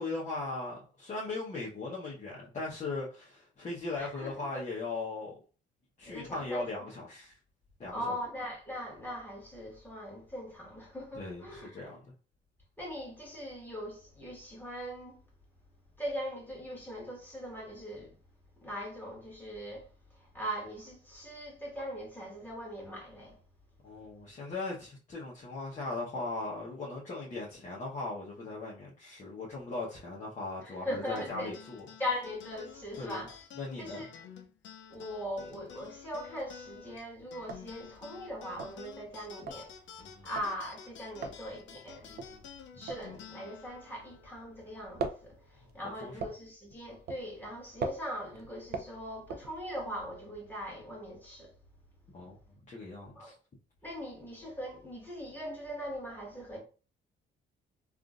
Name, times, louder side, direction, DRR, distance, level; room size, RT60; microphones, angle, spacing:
voice 1, 0.0-5.4 6.0-7.4 7.8-8.1 11.2-12.0 23.8-31.8 33.0-33.2 33.6-34.1 40.0-40.3 42.1-42.4 45.6-45.7 46.0-46.1 52.1-52.4 52.7-53.3, left 3 dB, 35° left, 1.0 m, -38 dB
voice 2, 4.0-4.6 6.0-6.7 7.9-11.9 12.8-15.2 16.0-18.1 18.6-23.4 30.6-31.5 32.0-33.3 33.8-34.1 34.9-39.7 40.2-42.2 42.8-51.5 53.1-53.3 53.8-56.6, equal, 10° left, 1.7 m, -40 dB
sound 1, 31.2-45.9, left 7 dB, 70° left, 0.5 m, -51 dB
sound 2, 36.1-36.6 37.0-37.1 37.3-44.4 44.7-50.0, right 4 dB, 55° right, 0.5 m, -41 dB
3.6 x 2.5 x 2.4 m
cardioid pair, 90°, 20 cm